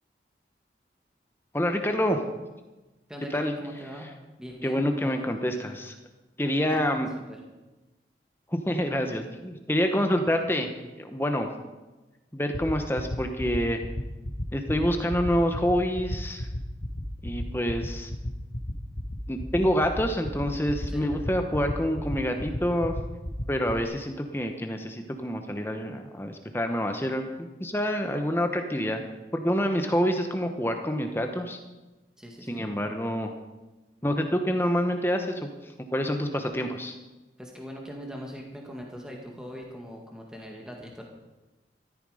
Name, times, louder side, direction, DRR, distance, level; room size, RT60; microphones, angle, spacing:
voice 1, 1.5-2.2 3.3-3.5 4.6-5.9 6.4-7.1 8.5-10.7 11.0-11.5 12.3-13.8 14.5-16.5 17.2-18.1 19.3-22.9 23.5-29.0 29.3-31.6 32.5-33.3 34.0-37.0, equal, 15° left, 5 dB, 1.0 m, -27 dB
voice 2, 3.1-4.1 4.4-5.3 6.7-6.8 7.3-7.4 20.9-21.1 32.2-32.6 37.4-41.0, equal, 5° right, 0 dB, 1.9 m, -41 dB
sound 1, 12.5-23.8, left 1 dB, 45° left, 1.5 m, -32 dB
14.5 x 13.5 x 5.0 m, 1.1 s
head